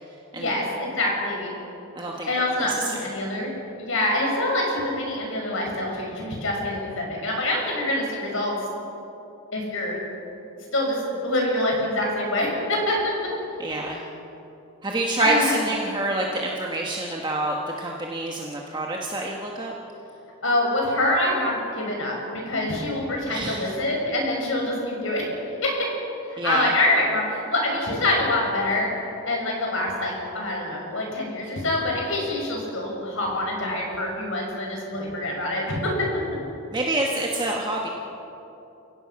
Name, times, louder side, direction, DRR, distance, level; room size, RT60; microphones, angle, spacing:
voice 1, 0.3-1.5 2.3-8.5 9.5-9.9 10.7-13.0 15.2-15.5 20.4-25.3 25.6-25.7 26.3-28.9 29.2-35.9, left 1 dB, 65° left, -1 dB, 6.5 m, -25 dB
voice 2, 2.0-2.3 2.6-2.8 13.6-14.0 14.8-19.7 23.3-23.7 26.4-26.7 36.7-37.9, right 1 dB, 20° right, -1 dB, 1.4 m, -27 dB
29.0 x 17.0 x 5.9 m, 2.9 s
head